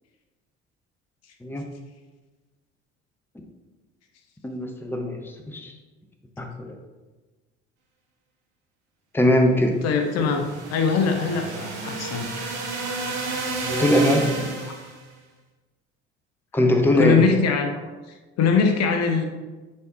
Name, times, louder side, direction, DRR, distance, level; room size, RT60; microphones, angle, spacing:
voice 1, 4.4-5.2 5.5-5.7 6.4-6.7 9.1-9.8 10.2-10.3 13.6-14.2 16.5-17.2, left 1 dB, 5° left, 4 dB, 0.8 m, -21 dB
voice 2, 9.8-12.3 14.0-14.8 16.5-16.6 17.0-17.7 18.4-19.2, left 5 dB, 45° left, 4 dB, 0.8 m, -22 dB
sound 1, 10.0-15.0, right 3 dB, 70° right, 1.5 m, -31 dB
9.5 x 4.2 x 2.9 m, 1.3 s
figure-of-eight pair, 55°, 36 cm